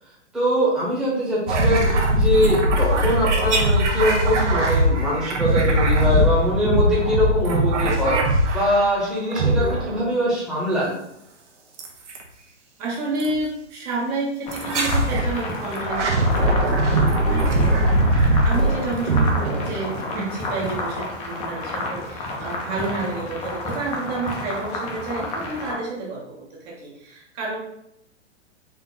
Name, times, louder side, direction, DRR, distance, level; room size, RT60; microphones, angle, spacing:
voice 1, 0.3-11.0, equal, ahead, -7 dB, 1.0 m, -23 dB
sound 1, 1.5-8.9 9.3-10.1 11.8-12.2 13.2-13.4 14.5-15.3 15.8-20.1, right 1 dB, 70° right, 1.1 m, -20 dB
voice 2, 12.8-27.6, right 3 dB, 35° right, -3 dB, 0.9 m, -30 dB
sound 2, 14.5-25.7, left 2 dB, 20° left, 0.6 m, -31 dB
4.3 x 2.8 x 3.7 m, 0.78 s
hypercardioid pair, 140°, 37 cm